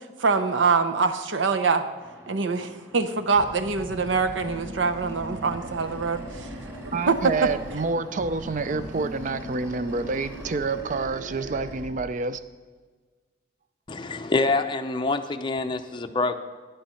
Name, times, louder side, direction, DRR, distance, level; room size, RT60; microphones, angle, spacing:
voice 1, 0.2-1.8 2.3-6.5 6.8-7.5, right 4 dB, 85° right, 9 dB, 0.7 m, -24 dB
sound 1, 2.0-10.8, equal, 10° right, 2.2 m, -48 dB
Animal, 3.3-7.9 8.2-12.1, right 1 dB, 65° right, 1.1 m, -39 dB
voice 2, 6.9-12.4, right 3 dB, 40° right, 13 dB, 0.4 m, -28 dB
voice 3, 13.9-16.4, left 3 dB, 25° left, 6 dB, 0.5 m, -26 dB
9.8 x 8.9 x 5.6 m, 1.5 s
head